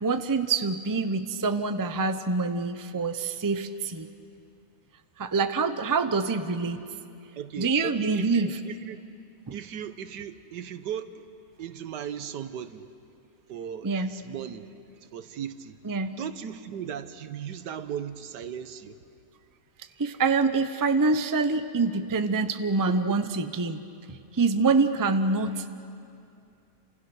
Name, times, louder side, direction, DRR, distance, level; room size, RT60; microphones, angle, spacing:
voice 1, 0.0-4.1 5.2-6.8 7.6-8.5 9.5-9.6 13.8-14.1 15.8-16.2 20.0-23.8 24.1-25.7, right 4 dB, 20° right, 9 dB, 0.5 m, -26 dB
voice 2, 7.4-9.0 9.5-11.3 11.6-12.9 13.5-14.7 15.1-15.8 16.2-19.0 22.9-23.2, right 9 dB, 85° right, 11 dB, 1.6 m, -37 dB
30.0 x 27.0 x 6.2 m, 2.5 s
omnidirectional pair, 1.8 m